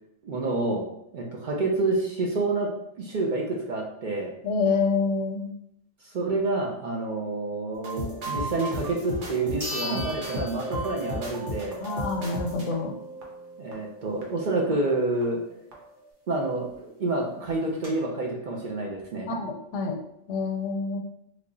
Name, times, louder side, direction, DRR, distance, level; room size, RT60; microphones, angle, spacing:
voice 1, 0.2-0.8 1.1-2.7 3.0-4.3 6.1-11.8 13.6-15.4 16.3-19.3, right 2 dB, 55° right, -1 dB, 0.6 m, -28 dB
voice 2, 4.4-5.5 9.8-10.0 10.3-10.4 11.8-12.9 19.3-20.0 20.3-21.0, left 4 dB, 90° left, 4 dB, 0.9 m, -27 dB
sound 1, 7.8-15.5 15.7-16.1, equal, 85° right, 1.2 m, -36 dB
sound 2, 9.6-11.4 11.7-11.8 16.5-16.6 16.8-16.9 17.4-17.9, left 2 dB, 70° right, 1.8 m, -37 dB
3.3 x 2.2 x 3.8 m, 0.76 s
omnidirectional pair, 1.2 m